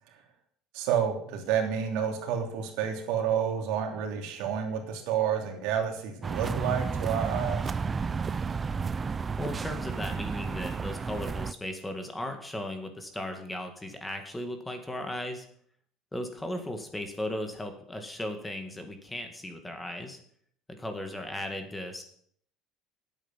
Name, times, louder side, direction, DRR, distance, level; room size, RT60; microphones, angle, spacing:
voice 1, 0.7-7.7, right 8 dB, 75° right, 3 dB, 3.0 m, -29 dB
sound 1, 6.2-11.5, right 5 dB, 25° right, 0.5 m, -32 dB
voice 2, 9.4-15.5 16.1-20.2 20.8-22.0, left 1 dB, 10° left, 5 dB, 2.0 m, -36 dB
10.5 x 8.4 x 7.4 m, 0.63 s
cardioid pair, 130°, 0 cm